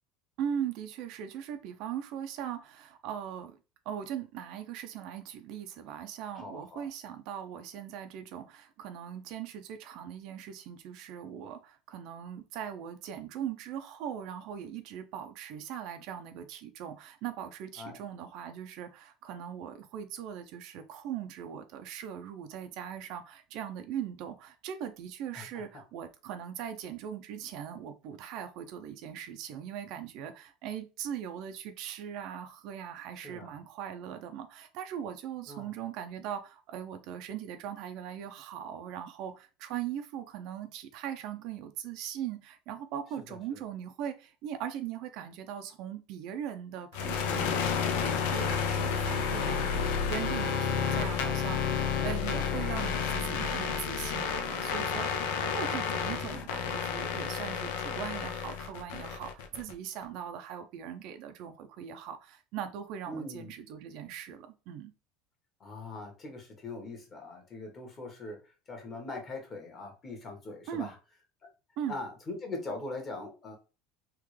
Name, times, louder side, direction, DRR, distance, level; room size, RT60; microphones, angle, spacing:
voice 1, 0.4-3.6 3.9-64.9 70.7-70.9 71.8-72.0, right 9 dB, 60° right, 0.5 m, -40 dB
voice 2, 6.3-6.9 17.8-18.0 25.3-25.6 33.2-33.5 35.5-35.7 43.3-43.6 50.9-51.5 56.1-56.4 63.1-63.5 65.6-70.9 71.9-73.5, left 2 dB, 30° left, 1.3 m, -42 dB
sound 1, 46.9-59.7, left 6 dB, 80° left, 0.5 m, -31 dB
3.5 x 2.4 x 3.2 m
supercardioid pair, 130°, 0 cm